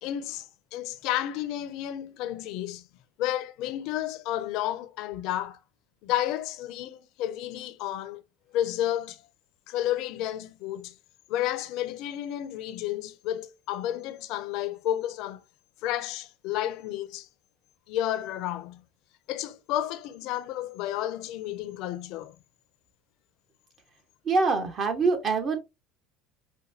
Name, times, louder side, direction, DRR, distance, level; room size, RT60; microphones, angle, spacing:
voice 1, 0.0-2.9 3.2-5.6 6.0-8.2 8.5-9.2 9.7-11.0 11.3-15.4 15.8-17.3 17.9-18.9 19.3-22.4, left 12 dB, 70° left, 0.5 m, -31 dB
voice 2, 24.2-25.6, right 4 dB, 40° right, 1.1 m, -24 dB
5.1 x 2.2 x 2.7 m
supercardioid pair, 90°, 0 cm